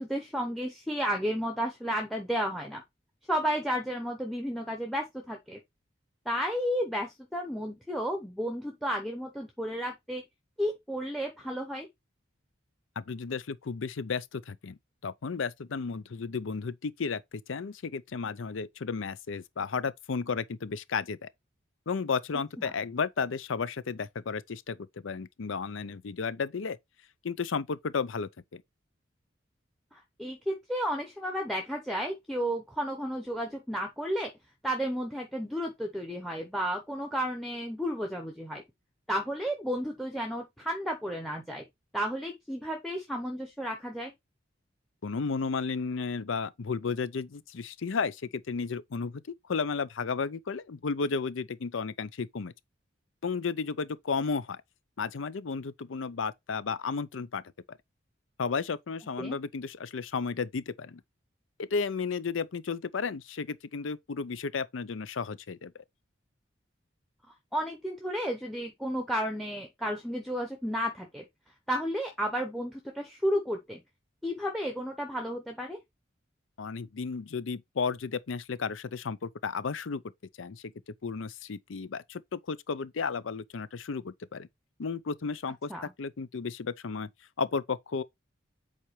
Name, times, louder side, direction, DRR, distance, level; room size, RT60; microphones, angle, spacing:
voice 1, 0.0-2.8 3.3-5.6 6.3-10.2 10.6-11.9 22.6-22.7 29.9-34.3 34.6-38.6 39.1-41.6 41.9-44.1 59.2-59.4 67.5-71.2 71.7-73.8 74.2-75.8 85.7-85.9, equal, ahead, 0.8 m, -32 dB
voice 2, 13.0-21.3 21.9-24.8 25.0-26.8 27.2-28.6 45.0-49.2 49.5-52.5 53.2-54.6 55.0-57.4 57.7-57.8 58.4-61.0 61.6-65.8 76.6-80.0 80.4-80.7 81.0-84.5 84.8-85.7 86.0-87.1 87.4-88.0, left 5 dB, 80° left, 0.5 m, -33 dB
7.5 x 4.3 x 3.2 m
head